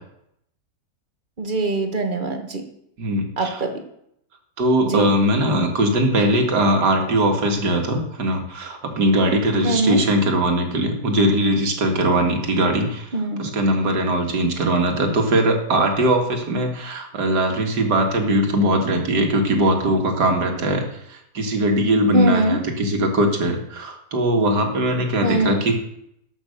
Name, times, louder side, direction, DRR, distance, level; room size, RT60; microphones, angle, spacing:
voice 1, 1.4-2.6 3.4-3.8 4.8-5.1 9.6-10.0 13.1-13.5 22.1-22.6 25.2-25.6, right 1 dB, 35° right, 6 dB, 1.3 m, -22 dB
voice 2, 3.0-3.6 4.6-13.1 13.4-20.8 21.1-25.7, right 1 dB, 80° right, 3 dB, 2.4 m, -20 dB
12.5 x 6.0 x 6.6 m, 0.75 s
omnidirectional pair, 1.8 m